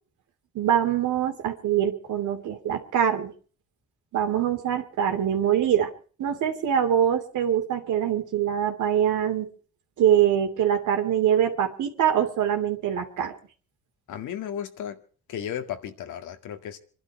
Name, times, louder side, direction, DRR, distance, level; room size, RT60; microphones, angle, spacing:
voice 1, 0.5-3.3 4.1-5.9 6.2-9.5 10.0-13.3, right 9 dB, 80° right, 2.8 m, -24 dB
voice 2, 14.1-15.0 15.3-16.8, left 9 dB, 80° left, 2.0 m, -34 dB
27.0 x 12.0 x 4.6 m
cardioid pair, 90°, 30 cm